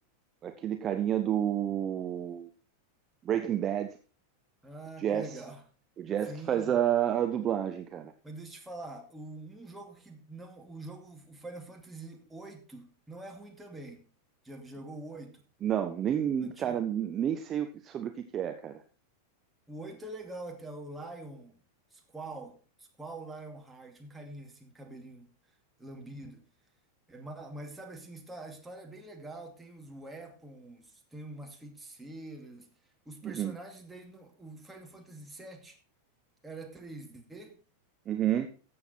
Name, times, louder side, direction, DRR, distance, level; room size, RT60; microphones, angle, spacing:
voice 1, 0.4-2.5 3.2-4.0 5.0-5.4 6.0-8.1 15.6-18.8 33.2-33.6 38.1-38.5, right 10 dB, 30° right, 0.8 m, -30 dB
voice 2, 4.6-5.6 6.2-6.8 8.2-14.1 14.4-15.4 16.4-16.8 19.7-21.6 21.9-25.3 25.8-26.4 27.1-32.7 33.1-35.8 36.4-37.5, right 2 dB, 5° right, 2.4 m, -45 dB
14.0 x 7.7 x 4.4 m
figure-of-eight pair, 90°, 0 cm